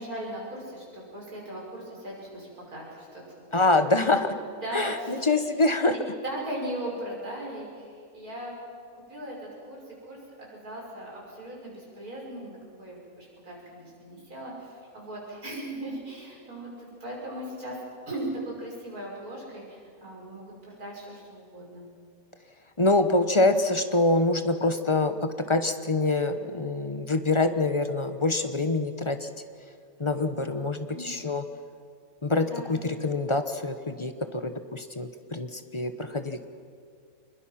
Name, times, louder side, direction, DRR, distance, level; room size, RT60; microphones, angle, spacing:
voice 1, 0.0-3.2 3.5-3.7 3.9-5.3 5.9-8.6 8.9-10.2 10.5-17.8 18.1-21.8 30.9-31.1 32.5-32.8, right 1 dB, 85° right, -3 dB, 6.3 m, -38 dB
voice 2, 3.5-4.3 4.7-6.0 22.8-29.3 30.0-31.4 32.2-36.4, left 2 dB, 25° left, 9 dB, 0.9 m, -25 dB
25.5 x 21.5 x 5.9 m, 2.1 s
omnidirectional pair, 1.5 m